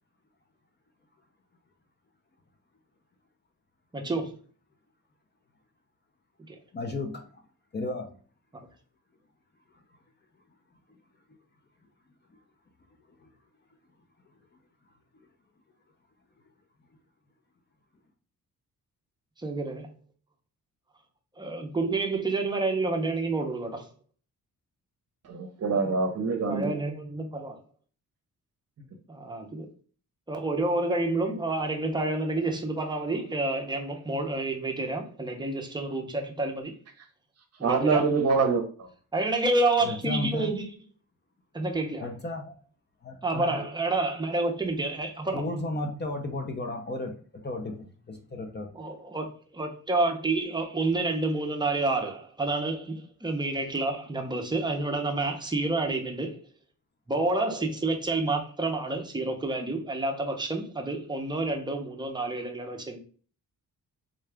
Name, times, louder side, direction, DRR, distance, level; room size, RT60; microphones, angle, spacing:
voice 1, 3.9-4.3 6.5-6.6 19.4-19.9 21.4-23.9 26.5-27.6 29.1-29.7 30.3-36.7 37.6-38.1 39.1-40.7 41.5-42.1 43.2-45.4 48.7-53.0 53.2-56.4 57.1-63.0, right 2 dB, 10° right, 0.6 m, -29 dB
voice 2, 6.7-7.2 7.7-8.1 39.8-40.5 42.0-42.5 43.0-43.7 45.3-48.7, left 2 dB, 30° left, 0.5 m, -34 dB
voice 3, 25.3-26.7 37.6-38.9, right 4 dB, 45° right, 0.7 m, -25 dB
3.7 x 2.3 x 3.3 m
wide cardioid pair, 140°, 36 cm